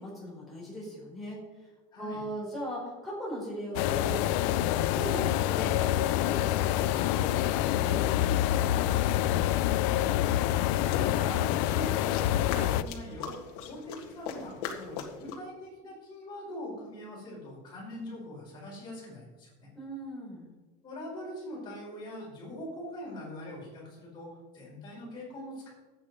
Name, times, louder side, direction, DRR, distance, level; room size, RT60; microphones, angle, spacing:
voice 1, 0.0-1.4 2.0-4.6 4.9-8.9 19.7-20.5, equal, ahead, -7 dB, 5.0 m, -39 dB
voice 2, 1.9-2.2 10.8-12.2 12.5-13.4 13.6-19.5 20.8-24.3 24.5-25.7, left 1 dB, 20° left, -4 dB, 4.9 m, -42 dB
sound 1, 3.7-12.8, left 13 dB, 50° left, 0.5 m, -27 dB
sound 2, 9.8-15.4, left 7 dB, 65° left, 1.9 m, -41 dB
12.0 x 9.0 x 5.4 m, 1.2 s
supercardioid pair, 170°, 20 cm